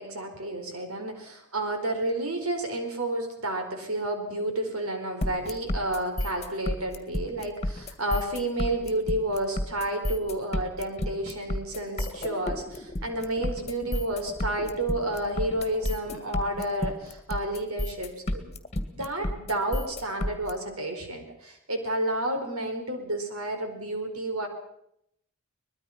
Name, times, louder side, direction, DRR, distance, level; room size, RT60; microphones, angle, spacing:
voice 1, 0.0-18.5 18.9-24.5, right 1 dB, 75° right, 5 dB, 4.5 m, -31 dB
sound 1, 5.2-20.5, left 1 dB, 30° left, 2.1 m, -31 dB
23.5 x 21.0 x 5.8 m, 0.74 s
head